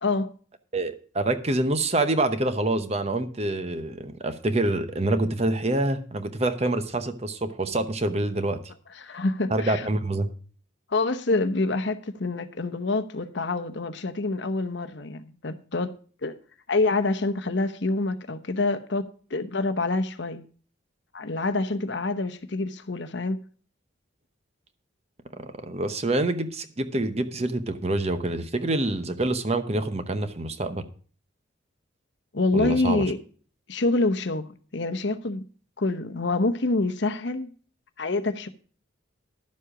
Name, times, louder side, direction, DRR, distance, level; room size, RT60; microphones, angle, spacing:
voice 1, 0.0-0.3 9.0-9.9 10.9-15.9 16.2-16.3 16.7-20.4 21.1-23.4 32.3-33.2 33.7-35.4 35.8-37.5 38.0-38.5, left 2 dB, 60° left, 0.9 m, -26 dB
voice 2, 0.7-8.6 9.5-10.3 25.3-30.8 32.5-33.0, right 2 dB, 30° right, 0.9 m, -26 dB
11.5 x 7.6 x 4.9 m
head